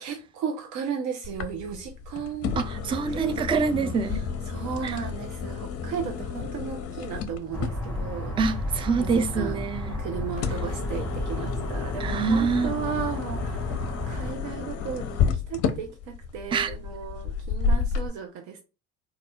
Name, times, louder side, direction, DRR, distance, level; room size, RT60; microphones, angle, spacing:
voice 1, 0.0-2.6 3.1-3.9 4.5-8.4 9.0-9.6 10.0-13.8 14.1-18.6, right 7 dB, 55° right, 0.6 m, -35 dB
sound 1, 1.2-18.1, left 6 dB, 45° left, 0.6 m, -32 dB
voice 2, 2.6-4.2 4.8-5.0 8.4-10.0 12.0-12.7 16.5-16.7, right 5 dB, 15° right, 0.4 m, -26 dB
sound 2, 7.5-14.3, left 1 dB, 5° left, 1.8 m, -32 dB
4.0 x 2.4 x 2.2 m
hypercardioid pair, 70°, 35 cm